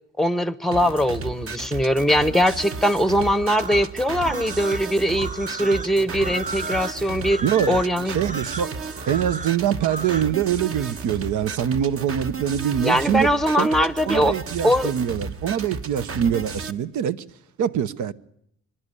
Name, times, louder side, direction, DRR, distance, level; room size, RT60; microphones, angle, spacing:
voice 1, 0.2-8.2 12.8-14.3 14.6-14.9, equal, ahead, 0.8 m, -21 dB
sound 1, 0.7-16.7, right 4 dB, 45° right, 1.4 m, -34 dB
sound 2, 3.4-10.3, right 3 dB, 25° right, 0.9 m, -35 dB
voice 2, 7.4-8.7 9.1-13.3 13.6-13.7 14.1-17.2 17.6-18.1, right 9 dB, 75° right, 0.9 m, -24 dB
24.0 x 11.0 x 9.8 m
cardioid pair, 90°, 30 cm